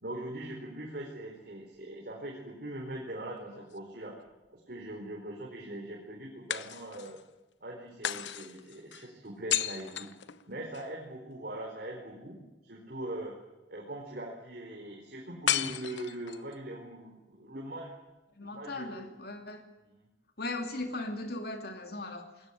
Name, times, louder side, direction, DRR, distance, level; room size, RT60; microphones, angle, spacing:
voice 1, 0.0-4.1 4.5-7.2 7.6-10.1 10.5-12.4 12.6-13.3 13.7-17.9 18.4-19.1 19.9-20.1, right 1 dB, 55° right, -2 dB, 4.5 m, -41 dB
sound 1, 3.4-4.5 6.5-7.3 8.0-10.9 15.5-16.5, left 10 dB, 80° left, 0.9 m, -35 dB
voice 2, 18.4-19.6 20.4-22.2, left 2 dB, 60° left, 5 dB, 2.7 m, -38 dB
20.5 x 17.0 x 10.0 m, 1.0 s
head